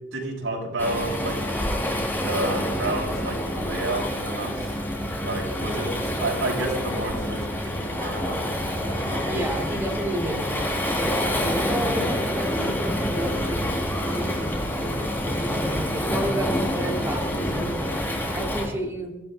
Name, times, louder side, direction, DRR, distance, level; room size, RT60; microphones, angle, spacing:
voice 1, 0.1-1.3 2.2-4.5 5.2-5.9 6.2-7.5 7.8-8.5 8.8-9.3, right 2 dB, 80° right, -1 dB, 6.8 m, -30 dB
Waves surf, 0.8-18.7, equal, 10° left, 4.3 m, -27 dB
voice 2, 9.3-11.1 11.4-18.0 18.3-19.1, right 1 dB, 15° right, -2 dB, 3.7 m, -32 dB
24.5 x 16.5 x 2.6 m, 1.0 s
head